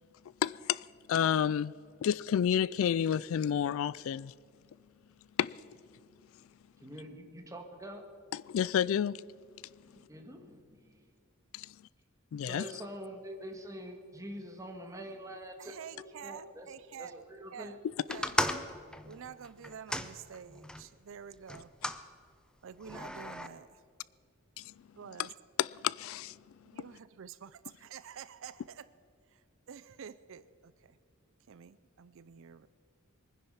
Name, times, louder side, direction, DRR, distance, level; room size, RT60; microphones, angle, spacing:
voice 1, 0.4-1.7 2.0-4.3 5.4-5.6 8.3-9.2 11.5-11.7 12.3-12.6 24.6-24.7 25.6-26.3, left 9 dB, 65° left, 0.3 m, -30 dB
voice 2, 6.8-8.1 9.8-11.1 12.4-17.8, equal, 15° right, 1.7 m, -45 dB
voice 3, 15.6-17.2 17.5-17.8 18.1-18.4 19.0-21.7 22.6-23.8 25.0-25.3 26.7-28.9 29.3-29.4 29.7-31.0 31.5-32.7, right 7 dB, 60° right, 0.4 m, -48 dB
sound 1, 18.1-20.9 21.5-22.0 22.8-23.5, left 1 dB, 5° left, 0.6 m, -35 dB
22.5 x 10.0 x 5.7 m
head